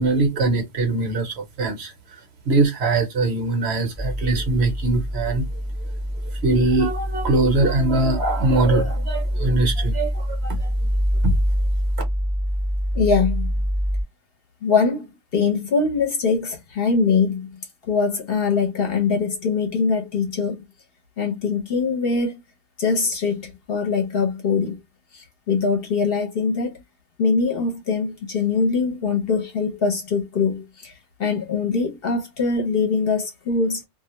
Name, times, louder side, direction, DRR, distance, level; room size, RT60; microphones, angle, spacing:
voice 1, 0.0-1.9 2.5-5.4 6.4-10.7 11.2-11.4, right 2 dB, 65° right, 0.9 m, -22 dB
sound 1, 3.9-14.0, equal, 5° right, 0.5 m, -25 dB
voice 2, 12.9-13.5 14.6-15.1 15.3-17.6 17.9-20.6 21.2-22.4 22.8-24.8 25.1-26.7 27.2-30.9 31.2-33.8, left 4 dB, 55° left, 0.8 m, -22 dB
2.3 x 2.1 x 2.8 m
omnidirectional pair, 1.3 m